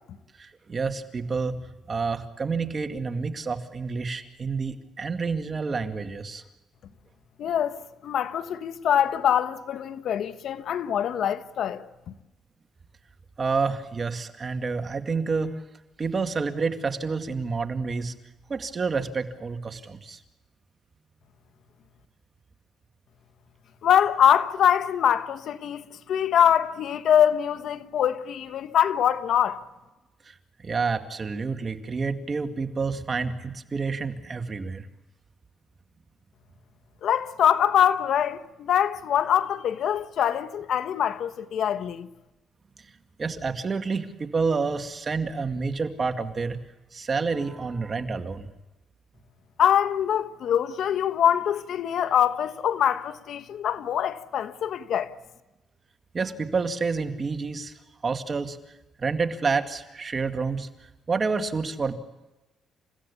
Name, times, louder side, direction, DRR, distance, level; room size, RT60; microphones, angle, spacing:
voice 1, 0.4-1.6 1.9-6.4 13.4-15.6 16.0-18.1 18.5-20.2 30.3-34.9 43.2-46.6 46.9-48.5 56.1-57.7 58.0-58.6 59.0-60.7 61.1-61.9, right 4 dB, 35° right, 2.2 m, -29 dB
voice 2, 7.4-7.8 8.0-11.8 23.8-29.6 37.0-42.1 49.6-55.1, left 9 dB, 70° left, 1.2 m, -24 dB
29.5 x 16.0 x 8.6 m
cardioid pair, 90°, 0 cm